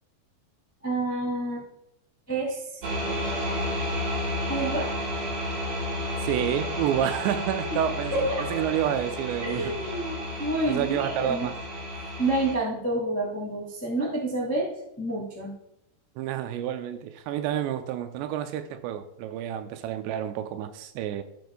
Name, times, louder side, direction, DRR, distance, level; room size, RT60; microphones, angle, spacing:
voice 1, 0.8-1.6 2.3-2.6 4.5-4.9 7.6-7.8 8.1-8.6 9.4-11.5 12.2-14.7 15.0-15.5, right 2 dB, 15° left, 0.5 m, -28 dB
sound 1, 2.8-12.5, left 1 dB, 45° right, 2.7 m, -32 dB
voice 2, 6.2-9.8 10.7-11.6 16.2-21.2, right 10 dB, 85° right, 2.7 m, -29 dB
15.5 x 6.9 x 2.3 m
omnidirectional pair, 5.0 m